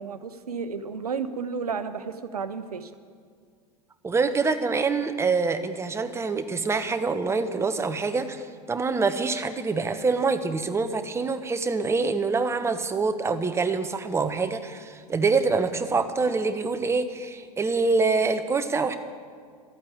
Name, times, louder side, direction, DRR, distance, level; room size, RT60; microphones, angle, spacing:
voice 1, 0.0-2.9, right 5 dB, 75° right, 11 dB, 0.9 m, -32 dB
voice 2, 4.0-19.0, right 4 dB, 15° right, 8 dB, 1.0 m, -25 dB
12.5 x 8.7 x 9.5 m, 2.1 s
figure-of-eight pair, 85°, 20 cm